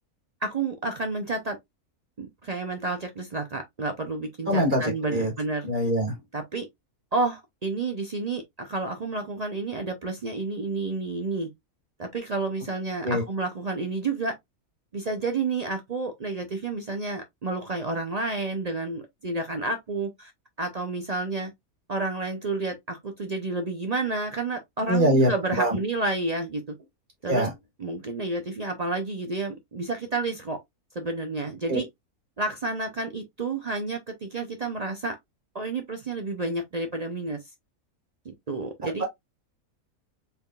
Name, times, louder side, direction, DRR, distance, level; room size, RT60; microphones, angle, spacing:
voice 1, 0.4-1.6 2.2-5.7 6.3-6.7 7.1-11.5 12.0-14.4 14.9-20.3 20.6-21.5 21.9-26.7 27.2-27.5 27.8-30.6 30.9-31.9 32.4-35.2 35.5-37.4 38.2-39.0, right 3 dB, 50° right, 0.4 m, -30 dB
voice 2, 4.5-4.8 5.1-5.3 5.7-6.1 13.0-13.2 24.9-25.3 25.6-25.8 27.3-27.5 31.7-31.8 38.8-39.0, equal, 35° right, 1.7 m, -23 dB
4.3 x 3.6 x 2.3 m
omnidirectional pair, 1.6 m